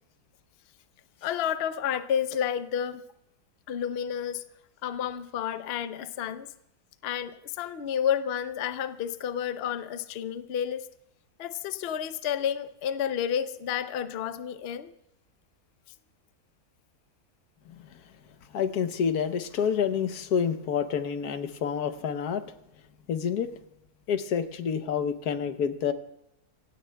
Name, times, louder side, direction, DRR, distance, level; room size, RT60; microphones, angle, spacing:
voice 1, 1.2-3.0 3.7-4.4 4.8-6.5 7.0-10.8 11.4-14.9, left 9 dB, 55° left, 11 dB, 0.7 m, -30 dB
voice 2, 17.6-18.0 18.5-22.5 23.1-23.5 24.1-25.9, left 7 dB, 80° left, 10 dB, 1.4 m, -28 dB
27.5 x 16.5 x 2.3 m, 0.80 s
omnidirectional pair, 1.6 m